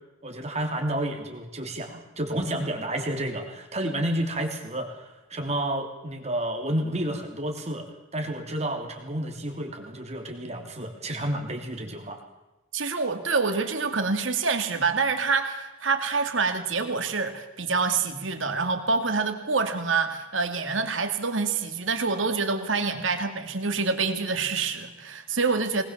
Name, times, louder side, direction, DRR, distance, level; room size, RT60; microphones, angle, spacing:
voice 1, 0.2-7.9 8.1-12.2, right 1 dB, 35° right, 3 dB, 3.0 m, -30 dB
voice 2, 12.7-25.8, right 4 dB, 75° right, 6 dB, 2.4 m, -26 dB
21.5 x 20.0 x 7.4 m, 0.98 s
head